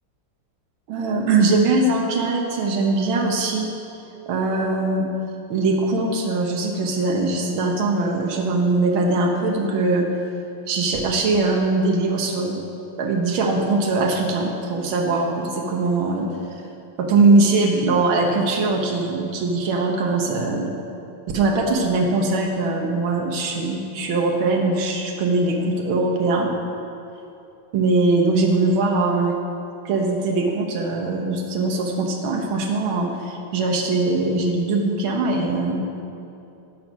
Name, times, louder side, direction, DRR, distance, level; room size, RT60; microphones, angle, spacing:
voice 1, 0.9-3.7 4.3-5.1 5.5-10.1 10.7-12.6 13.0-16.6 17.0-20.7 21.3-26.5 27.7-29.4 29.9-35.8, right 3 dB, 85° right, 1 dB, 1.8 m, -21 dB
12.0 x 5.3 x 6.1 m, 2.8 s
omnidirectional pair, 2.2 m